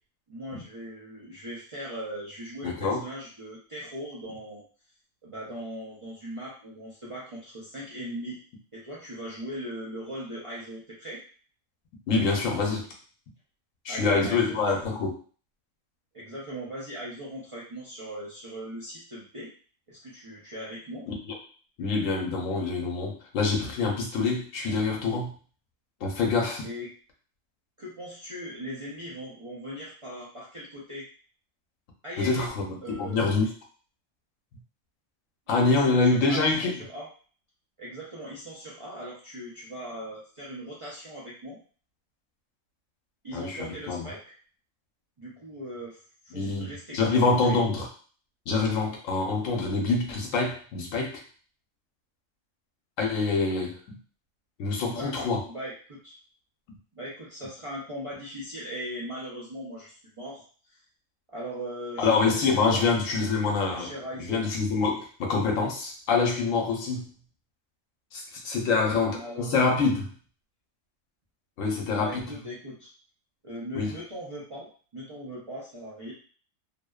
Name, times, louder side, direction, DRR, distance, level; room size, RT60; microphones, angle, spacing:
voice 1, 0.3-4.6 5.2-8.4 8.7-11.2 13.9-14.8 16.1-19.5 19.9-21.1 26.6-26.9 27.8-31.1 32.0-32.5 32.8-33.2 35.5-37.1 37.8-41.6 43.2-44.3 45.2-46.0 46.2-47.6 54.8-56.1 57.0-60.8 61.3-62.9 63.6-64.4 68.7-69.8 71.9-72.9 73.4-76.1, equal, 45° right, -7 dB, 0.4 m, -39 dB
voice 2, 2.6-3.0 12.1-12.8 13.8-15.2 21.1-21.3 21.8-25.3 26.0-26.7 32.2-33.5 35.5-36.7 43.3-44.1 46.3-47.9 48.5-51.1 53.0-54.0 54.6-55.4 62.0-63.9 64.3-67.0 68.1-70.1 71.6-72.2 73.7-73.9, left 4 dB, 90° left, 1 dB, 1.0 m, -26 dB
2.6 x 2.0 x 2.3 m, 0.42 s
omnidirectional pair, 1.3 m